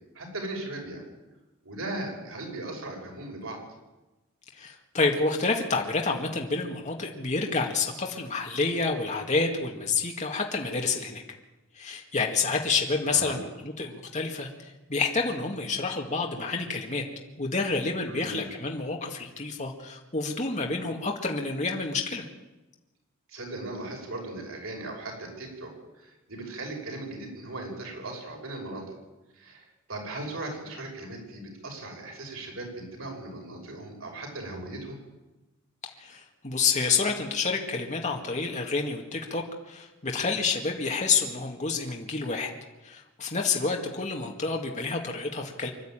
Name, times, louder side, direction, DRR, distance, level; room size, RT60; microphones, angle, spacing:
voice 1, 0.1-1.0 1.6-3.6 13.1-13.4 18.1-18.5 23.3-25.7 26.0-28.8 29.3-35.0, right 2 dB, 85° right, 1 dB, 6.1 m, -38 dB
voice 2, 4.5-11.2 11.7-17.0 17.4-22.3 36.0-42.5 42.8-45.7, left 4 dB, 35° left, 1 dB, 2.0 m, -29 dB
25.0 x 12.0 x 9.0 m, 1.1 s
head